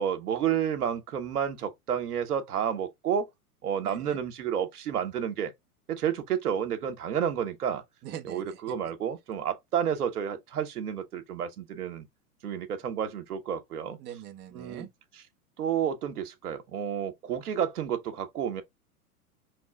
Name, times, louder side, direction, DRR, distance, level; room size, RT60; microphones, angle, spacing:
voice 1, 0.0-3.3 3.6-5.5 5.9-7.8 8.2-12.1 12.4-14.0 14.5-14.9 15.6-18.6, right 8 dB, 75° right, 1.0 m, -30 dB
voice 2, 3.8-4.2 8.0-8.7 14.0-14.9, right 10 dB, 25° right, 0.7 m, -43 dB
5.2 x 3.2 x 2.2 m
hypercardioid pair, 100°, 46 cm